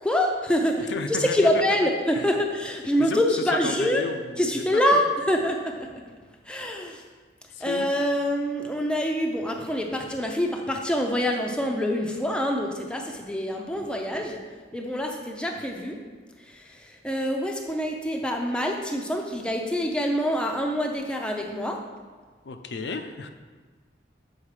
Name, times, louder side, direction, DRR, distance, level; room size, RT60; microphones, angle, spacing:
voice 1, 0.0-4.0 4.4-6.0 6.5-7.0 7.6-14.4 14.7-16.0 16.5-21.8, equal, 5° left, 2 dB, 0.5 m, -26 dB
voice 2, 0.9-1.4 1.8-2.3 3.0-4.6 4.9-5.0 7.5-7.9 22.4-23.3, left 4 dB, 75° left, 7 dB, 0.5 m, -33 dB
7.2 x 4.0 x 4.9 m, 1.4 s
head